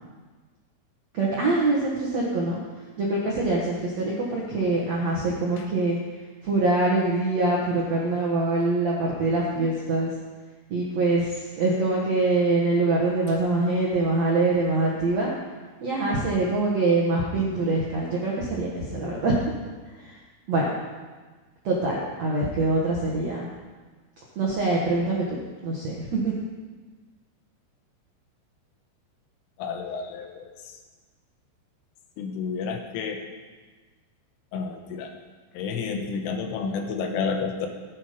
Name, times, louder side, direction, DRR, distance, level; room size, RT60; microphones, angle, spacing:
voice 1, 1.1-2.6 3.0-6.0 6.4-10.1 10.7-15.3 15.8-19.4 20.0-20.1 20.5-20.7 21.6-23.5 24.3-25.4 25.6-26.3, right 2 dB, 70° right, -4 dB, 1.6 m, -24 dB
voice 2, 29.6-30.5 32.2-33.2 34.5-35.1 35.6-37.7, left 5 dB, 85° left, 4 dB, 3.6 m, -30 dB
15.5 x 8.8 x 5.2 m, 1.4 s
omnidirectional pair, 5.6 m